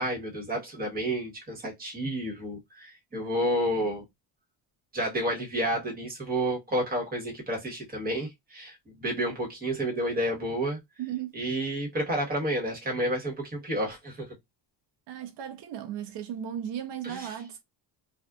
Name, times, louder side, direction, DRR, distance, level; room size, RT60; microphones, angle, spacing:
voice 1, 0.0-4.0 4.9-10.8 11.3-14.3 17.0-17.3, right 1 dB, 20° right, 1.3 m, -30 dB
voice 2, 11.0-11.4 15.1-17.6, right 10 dB, 55° right, 0.7 m, -36 dB
2.6 x 2.4 x 2.3 m
cardioid pair, 115°, 49 cm